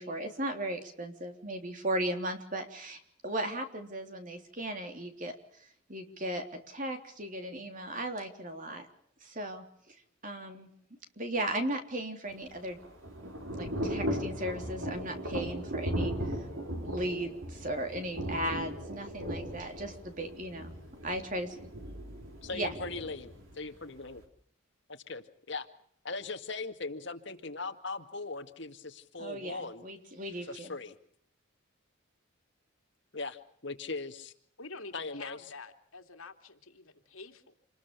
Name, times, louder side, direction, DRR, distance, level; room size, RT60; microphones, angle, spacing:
voice 1, 0.0-8.9 9.2-10.0 10.2-10.7 11.2-12.8 13.5-16.4 16.7-20.7 21.0-21.6 22.5-22.7 29.2-30.7, right 1 dB, 40° right, 5 dB, 3.5 m, -36 dB
Thunder / Rain, 12.3-24.2, equal, 70° right, 4.4 m, -37 dB
voice 2, 22.4-24.2 24.9-25.7 26.0-29.8 30.5-31.0 33.1-34.3 34.9-35.4, left 3 dB, 60° left, 7 dB, 2.1 m, -39 dB
voice 3, 34.6-37.6, left 4 dB, 85° left, 5 dB, 2.6 m, -47 dB
27.5 x 20.5 x 7.0 m, 0.65 s
head